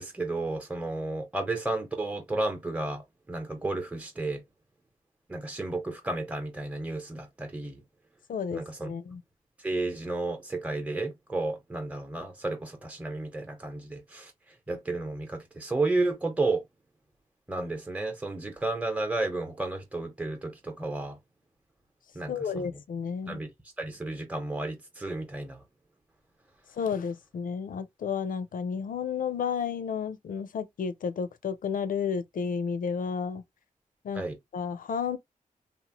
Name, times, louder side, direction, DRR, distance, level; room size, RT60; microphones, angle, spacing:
voice 1, 0.0-3.0 3.3-4.4 5.3-7.8 8.5-8.9 9.6-14.3 14.7-16.6 17.5-21.2 22.1-22.8 23.3-23.5 23.8-25.6 34.1-34.4, right 2 dB, 10° right, 0.9 m, -32 dB
voice 2, 8.3-9.2 22.3-23.4 26.8-33.4 34.0-34.2 34.5-35.2, left 6 dB, 75° left, 0.5 m, -32 dB
2.8 x 2.1 x 2.9 m
cardioid pair, 65°, 14 cm